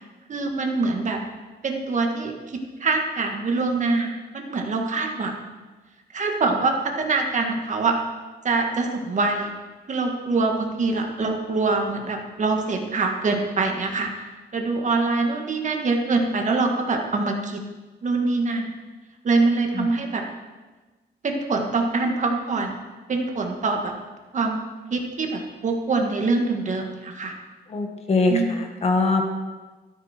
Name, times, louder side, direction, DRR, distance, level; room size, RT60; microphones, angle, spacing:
voice 1, 0.3-1.2 1.6-5.5 6.1-7.9 8.4-9.5 9.9-14.1 14.5-17.6 18.0-18.7 19.2-20.2 21.2-22.8 23.1-23.9 24.3-24.6 24.9-27.3 28.3-28.7, right 3 dB, 40° right, 2 dB, 1.8 m, -24 dB
voice 2, 27.7-29.2, left 3 dB, 35° left, 3 dB, 1.8 m, -22 dB
13.5 x 12.5 x 4.5 m, 1.3 s
wide cardioid pair, 155°, 19 cm